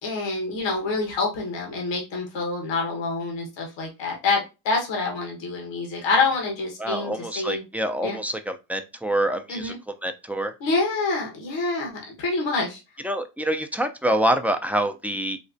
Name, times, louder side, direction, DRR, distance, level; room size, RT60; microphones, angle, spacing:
voice 1, 0.0-7.6 8.0-8.2 9.5-9.8 10.6-11.9 12.2-12.8, left 3 dB, 85° left, -1 dB, 1.3 m, -26 dB
voice 2, 6.8-9.7 10.0-10.5 13.0-15.4, right 1 dB, 5° right, 6 dB, 0.4 m, -26 dB
4.3 x 2.3 x 2.6 m, 0.27 s
cardioid pair, 75°, 43 cm